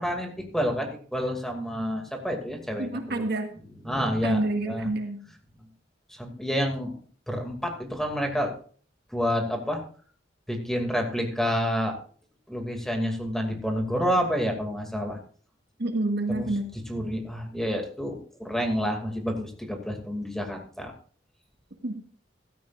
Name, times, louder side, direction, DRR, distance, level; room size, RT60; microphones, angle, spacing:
voice 1, 0.0-3.2 3.8-4.9 6.1-6.9 7.3-8.5 9.1-9.8 10.5-12.0 12.5-15.2 16.3-16.5 16.9-20.9, equal, ahead, 3 dB, 2.3 m, -29 dB
voice 2, 2.8-3.5 4.2-5.2 15.8-16.6 21.8-21.9, right 2 dB, 60° right, 4 dB, 1.8 m, -28 dB
15.5 x 13.5 x 2.5 m, 0.43 s
head